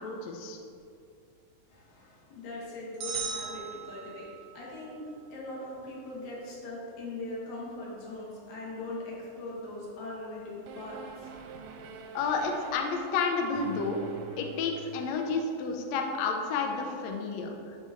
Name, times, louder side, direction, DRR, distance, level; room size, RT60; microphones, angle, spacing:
voice 1, 0.0-0.6 12.1-14.0 14.4-17.5, left 4 dB, 90° left, 3 dB, 1.5 m, -30 dB
voice 2, 1.7-11.3, left 2 dB, 60° left, -5 dB, 2.8 m, -40 dB
sound 1, 3.0-4.6, right 6 dB, 65° right, 1.4 m, -37 dB
sound 2, 10.7-15.3, right 5 dB, 90° right, 2.3 m, -46 dB
11.5 x 4.0 x 3.7 m, 2.4 s
omnidirectional pair, 4.0 m